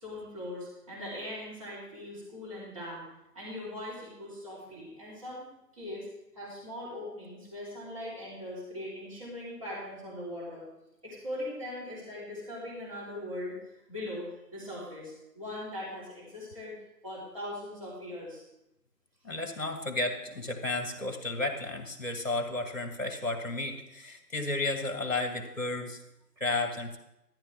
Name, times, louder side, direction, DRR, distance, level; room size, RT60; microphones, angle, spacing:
voice 1, 0.0-3.0 3.3-5.5 5.7-6.1 6.3-10.6 11.0-13.6 13.9-14.2 14.5-16.7 17.0-18.4, left 1 dB, 20° right, -8 dB, 3.0 m, -40 dB
voice 2, 19.2-26.0 26.4-27.0, left 2 dB, 55° left, 5 dB, 1.8 m, -33 dB
13.0 x 11.0 x 3.5 m, 0.87 s
figure-of-eight pair, 165°, 47 cm